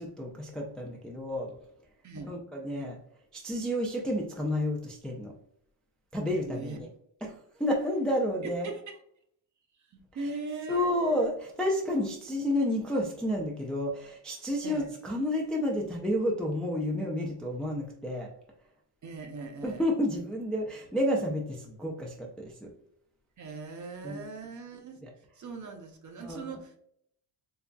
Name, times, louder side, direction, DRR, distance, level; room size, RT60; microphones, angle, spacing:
voice 1, 0.0-1.5 2.2-3.0 3.3-5.3 6.1-6.9 7.2-8.7 10.7-18.3 19.6-22.7 24.0-24.2 25.0-25.1 26.2-26.6, left 1 dB, ahead, -1 dB, 0.4 m, -30 dB
voice 2, 6.5-6.8 8.4-9.0 9.9-11.3 14.6-14.9 19.0-19.8 23.4-25.0 25.4-26.8, right 3 dB, 40° right, 5 dB, 0.7 m, -40 dB
3.9 x 3.4 x 2.2 m, 0.70 s
cardioid pair, 135°, 46 cm